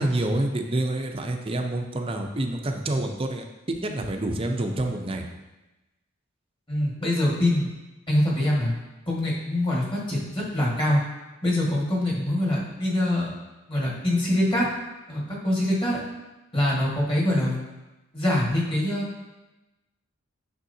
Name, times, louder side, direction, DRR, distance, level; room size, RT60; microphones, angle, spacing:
voice 1, 0.0-3.4 3.8-5.3, right 1 dB, 25° right, 3 dB, 0.6 m, -27 dB
voice 2, 6.7-7.7 8.1-8.7 9.1-11.0 11.4-13.3 13.7-14.7 15.1-16.0 16.5-17.6 18.1-19.1, left 1 dB, 25° left, -5 dB, 1.7 m, -24 dB
9.1 x 6.1 x 2.8 m, 1.1 s
head